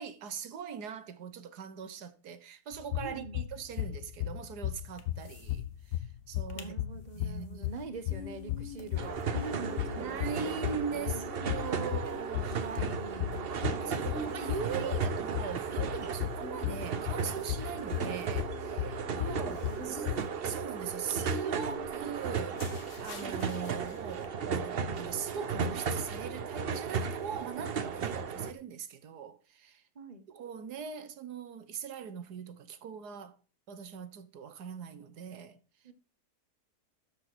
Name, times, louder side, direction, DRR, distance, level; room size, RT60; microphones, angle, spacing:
voice 1, 0.0-6.8 7.1-7.7 10.0-19.6 19.8-20.1 20.4-22.6 23.0-29.8 30.3-33.4 33.7-35.6, right 7 dB, 75° right, 1.6 m, -41 dB
sound 1, 2.7-20.2, left 13 dB, 90° left, 1.2 m, -36 dB
voice 2, 3.0-3.4 6.5-11.3 12.5-14.1 19.2-20.1 29.9-30.2 35.8-35.9, right 3 dB, 30° right, 1.1 m, -44 dB
sound 2, 5.0-5.6 5.9-6.0 6.3-6.7 7.1-24.3, left 2 dB, 50° left, 1.7 m, -47 dB
sound 3, 9.0-28.5, right 5 dB, 45° right, 0.8 m, -35 dB
13.0 x 5.3 x 6.1 m
omnidirectional pair, 1.7 m